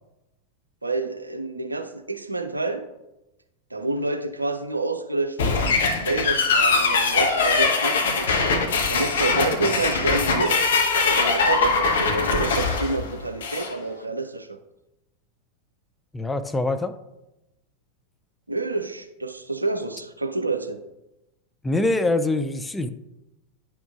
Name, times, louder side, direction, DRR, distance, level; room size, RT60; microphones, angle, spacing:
voice 1, 0.8-2.9 3.7-5.7 6.0-8.4 8.9-10.7 11.0-14.6 18.5-20.8, right 3 dB, 80° right, 8 dB, 0.6 m, -28 dB
sound 1, 5.4-13.7, left 4 dB, 60° left, 0.9 m, -22 dB
voice 2, 16.1-17.0 21.6-22.9, left 2 dB, 10° left, 8 dB, 0.4 m, -24 dB
10.0 x 6.0 x 2.5 m, 0.95 s
figure-of-eight pair, 90°, 0 cm